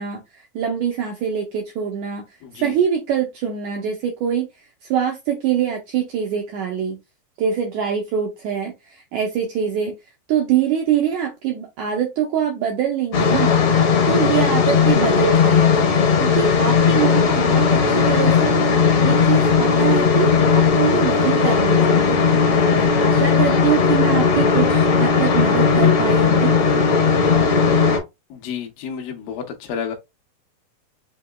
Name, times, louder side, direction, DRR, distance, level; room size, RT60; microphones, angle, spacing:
voice 1, 0.0-2.3 2.5-4.5 4.9-7.0 7.4-10.0 10.3-13.5 14.1-15.9 16.2-18.5 19.0-22.1 22.7-26.6, right 8 dB, 80° right, 1.7 m, -24 dB
sound 1, 13.1-28.0, left 5 dB, 60° left, 1.4 m, -17 dB
voice 2, 28.3-29.9, left 7 dB, 75° left, 2.2 m, -30 dB
7.8 x 2.8 x 2.2 m
omnidirectional pair, 4.2 m